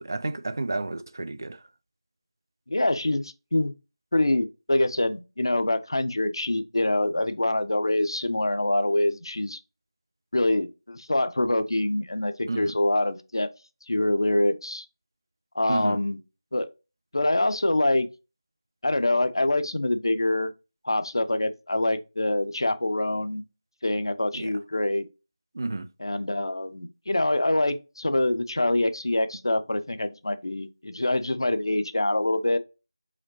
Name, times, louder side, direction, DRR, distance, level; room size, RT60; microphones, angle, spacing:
voice 1, 0.0-1.6 12.5-12.8 15.7-16.0 24.3-24.5 25.5-25.9, right 2 dB, 40° right, 0.3 m, -31 dB
voice 2, 2.7-3.7 4.1-9.6 10.3-13.5 13.9-14.8 15.5-16.2 16.5-16.7 17.1-18.1 18.8-20.5 20.8-23.4 23.8-25.1 26.0-32.6, left 1 dB, 55° left, 0.6 m, -25 dB
5.0 x 3.6 x 2.7 m
figure-of-eight pair, 170°, 3 cm